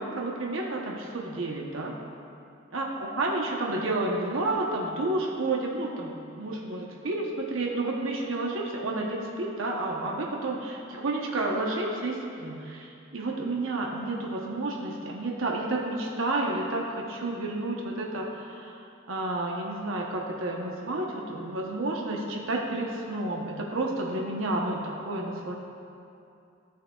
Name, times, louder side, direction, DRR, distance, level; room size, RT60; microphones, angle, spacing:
voice 1, 0.0-2.0 2.7-18.8 19.1-25.5, right 2 dB, 90° right, -1 dB, 0.9 m, -30 dB
14.0 x 6.6 x 2.3 m, 2.6 s
head